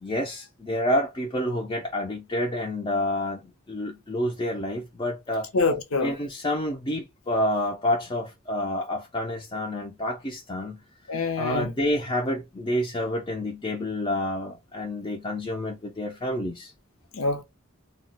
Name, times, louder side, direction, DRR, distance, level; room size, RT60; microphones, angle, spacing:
voice 1, 0.0-5.5 6.0-10.8 11.4-16.7, left 1 dB, 20° left, 0.4 m, -28 dB
voice 2, 5.5-6.1 11.1-11.7 17.1-17.4, left 3 dB, 90° left, 0.7 m, -25 dB
2.3 x 2.1 x 3.9 m
head